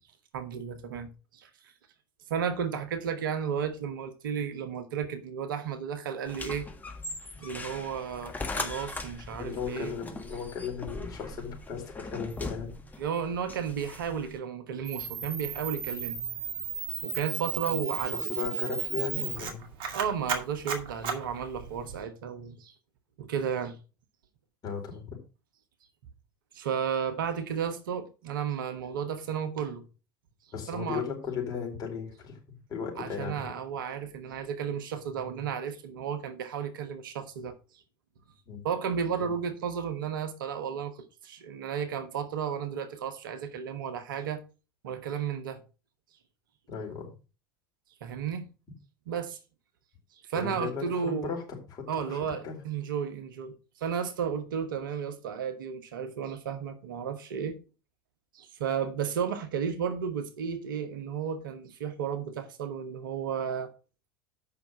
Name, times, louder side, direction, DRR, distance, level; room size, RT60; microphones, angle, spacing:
voice 1, 0.3-1.5 2.3-6.7 7.4-9.9 13.0-16.2 17.0-18.2 19.9-22.7 23.2-23.8 26.5-29.8 30.7-31.0 33.0-37.6 38.6-44.4 44.8-45.6 48.0-48.5 49.1-49.4 50.3-51.3 51.9-53.5 53.8-57.6 58.3-63.7, right 7 dB, 65° right, 1.3 m, -33 dB
sound 1, 6.3-14.4, left 2 dB, 15° left, 1.6 m, -40 dB
voice 2, 9.4-12.7 18.1-19.6 24.6-25.2 30.5-33.5 38.5-38.6 39.2-39.3 46.7-47.1 50.3-51.4 51.7-52.6, left 6 dB, 35° left, 4.3 m, -36 dB
Camera, 14.8-22.0, right 7 dB, 45° right, 2.2 m, -34 dB
8.4 x 5.9 x 5.3 m
figure-of-eight pair, 75°, 12 cm